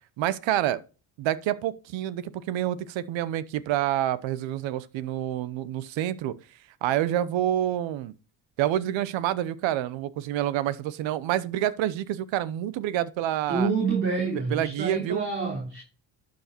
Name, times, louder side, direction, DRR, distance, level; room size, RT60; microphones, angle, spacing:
voice 1, 0.2-0.8 1.2-6.3 6.8-8.1 8.6-13.7 14.3-15.2, right 12 dB, 85° right, 0.9 m, -28 dB
voice 2, 13.5-15.8, right 4 dB, 30° right, 3.3 m, -27 dB
12.0 x 5.3 x 4.4 m
cardioid pair, 120°, 45 cm